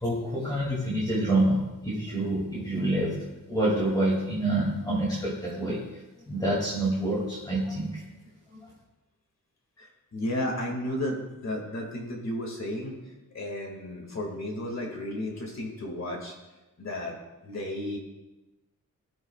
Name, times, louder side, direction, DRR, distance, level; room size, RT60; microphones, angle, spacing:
voice 1, 0.0-3.1 3.5-5.8 6.3-7.9, right 1 dB, 10° left, -6 dB, 2.6 m, -27 dB
voice 2, 9.8-13.0 13.3-16.3 16.8-17.2 17.4-18.0, left 1 dB, 50° left, 1 dB, 2.2 m, -33 dB
19.5 x 12.0 x 2.4 m, 1.1 s
wide cardioid pair, 175°, 35 cm